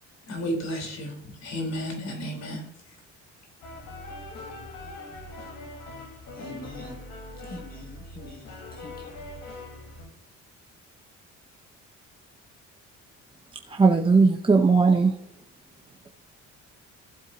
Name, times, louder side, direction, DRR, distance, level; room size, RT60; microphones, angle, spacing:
voice 1, 0.3-1.1 1.4-2.6, equal, 60° left, 3.9 m, -32 dB
sound 1, 3.6-10.1, left 2 dB, 80° left, 4.2 m, -42 dB
voice 2, 6.3-7.0 7.4-9.2, left 2 dB, 30° left, 1.9 m, -43 dB
voice 3, 13.7-15.1, right 4 dB, 15° right, 0.8 m, -18 dB
15.5 x 8.1 x 2.8 m
cardioid pair, 125°, 31 cm